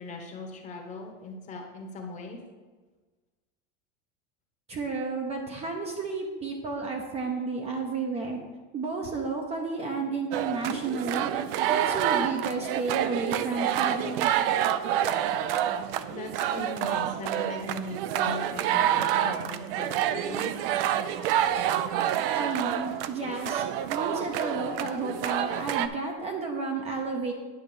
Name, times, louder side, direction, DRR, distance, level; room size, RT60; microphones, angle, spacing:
voice 1, 0.0-2.4 16.1-20.5, left 2 dB, 25° left, 3 dB, 1.1 m, -39 dB
voice 2, 4.7-8.4 8.7-11.3 11.7-14.3 22.3-27.3, right 3 dB, 20° right, 2 dB, 0.7 m, -32 dB
sound 1, 10.3-25.9, right 11 dB, 65° right, 0.5 m, -28 dB
9.3 x 3.8 x 6.9 m, 1.3 s
supercardioid pair, 160°, 31 cm